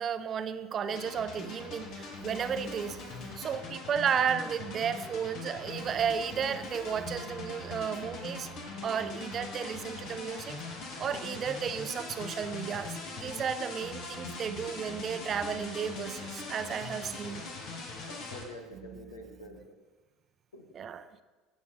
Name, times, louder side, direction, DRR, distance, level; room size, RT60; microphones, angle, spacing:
voice 1, 0.0-8.5 8.8-10.6 11.0-17.4 20.8-21.0, right 7 dB, 40° right, 12 dB, 0.7 m, -33 dB
sound 1, 0.9-18.4, left 3 dB, 55° left, 1.9 m, -41 dB
voice 2, 18.0-19.7 20.5-20.7, left 1 dB, 80° left, 3 dB, 1.6 m, -47 dB
16.0 x 6.9 x 4.1 m, 1.3 s
figure-of-eight pair, 70°, 0 cm